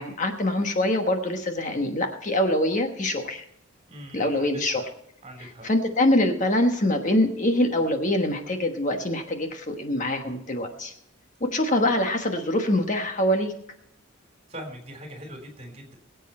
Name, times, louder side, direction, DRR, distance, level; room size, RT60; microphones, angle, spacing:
voice 1, 0.0-3.4 4.1-4.8 5.6-10.9 11.4-13.5, left 1 dB, 40° left, 5 dB, 1.3 m, -24 dB
voice 2, 3.9-4.8 5.2-5.7 14.5-15.9, equal, 30° right, 3 dB, 3.5 m, -41 dB
21.5 x 8.2 x 4.4 m, 0.74 s
head